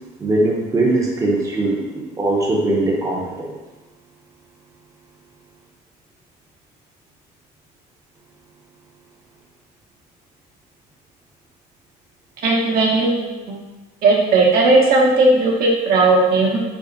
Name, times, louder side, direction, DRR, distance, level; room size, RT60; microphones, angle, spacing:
voice 1, 0.2-3.5, right 2 dB, 20° right, -4 dB, 0.7 m, -20 dB
voice 2, 12.4-13.6 14.0-16.6, right 2 dB, 65° right, -4 dB, 0.9 m, -16 dB
3.5 x 2.1 x 3.9 m, 1.2 s
cardioid pair, 110°, 17 cm